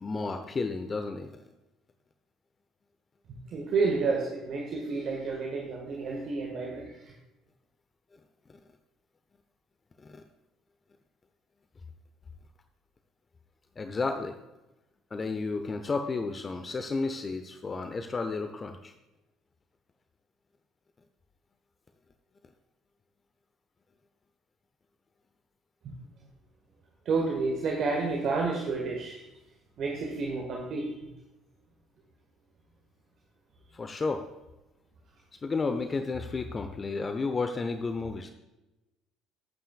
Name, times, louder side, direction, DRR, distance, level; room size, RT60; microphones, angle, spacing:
voice 1, 0.0-1.4 10.0-10.2 13.8-14.4 15.1-18.9 33.7-34.2 35.4-38.3, left 3 dB, 30° left, 7 dB, 0.8 m, -32 dB
voice 2, 3.5-7.1 27.0-29.2 29.8-30.9, right 4 dB, 45° right, 0 dB, 1.7 m, -30 dB
18.0 x 9.0 x 2.4 m, 1.0 s
figure-of-eight pair, 55°, 0 cm